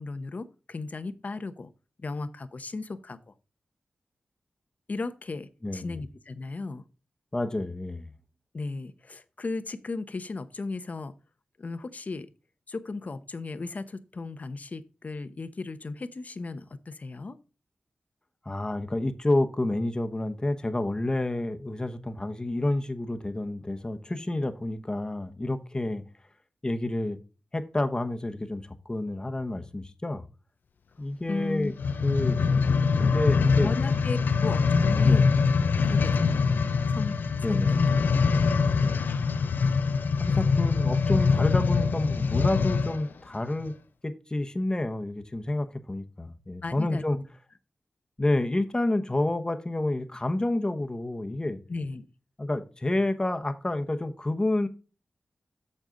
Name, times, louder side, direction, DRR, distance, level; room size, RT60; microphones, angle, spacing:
voice 1, 0.0-1.7 2.0-3.3 4.9-6.8 8.5-11.1 11.6-12.3 12.7-17.4 31.3-31.7 33.6-35.3 35.7-36.4 36.9-37.8 38.3-38.5 46.6-47.2 51.7-52.1, left 3 dB, 50° left, 0.8 m, -35 dB
voice 2, 5.6-6.0 7.3-8.1 18.4-26.0 26.6-27.2 27.5-30.2 31.0-31.7 32.0-32.4 33.0-33.7 35.0-35.3 37.4-38.0 38.8-39.1 40.2-43.7 44.0-47.2 48.2-51.6 52.4-54.7, left 1 dB, 25° left, 1.0 m, -29 dB
sound 1, 31.7-43.0 43.7-43.8, left 5 dB, 80° left, 0.6 m, -23 dB
7.5 x 6.7 x 3.8 m
cardioid pair, 55°, 3 cm